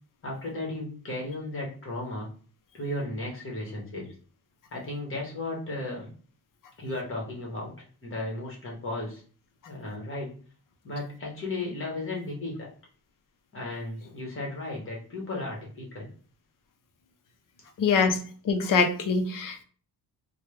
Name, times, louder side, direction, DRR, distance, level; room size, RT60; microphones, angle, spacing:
voice 1, 0.2-2.3 2.7-4.1 4.7-6.1 6.8-7.7 8.0-9.2 9.6-10.3 10.8-12.7 13.5-16.1, left 2 dB, 30° left, -2 dB, 1.2 m, -35 dB
voice 2, 17.8-18.2 18.5-19.6, left 5 dB, 55° left, 6 dB, 0.6 m, -24 dB
3.2 x 2.2 x 3.1 m, 0.42 s
wide cardioid pair, 150°, 40 cm